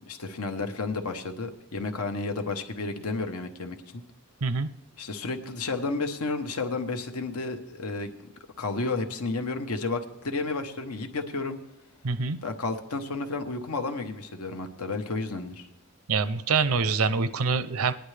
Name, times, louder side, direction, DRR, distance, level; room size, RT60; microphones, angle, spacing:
voice 1, 0.1-4.0 5.0-8.1 8.6-11.6 12.4-15.7, left 3 dB, 85° left, 6 dB, 1.1 m, -32 dB
voice 2, 12.0-12.4 16.1-17.9, right 4 dB, 75° right, 14 dB, 0.6 m, -25 dB
18.5 x 10.5 x 3.3 m, 0.97 s
head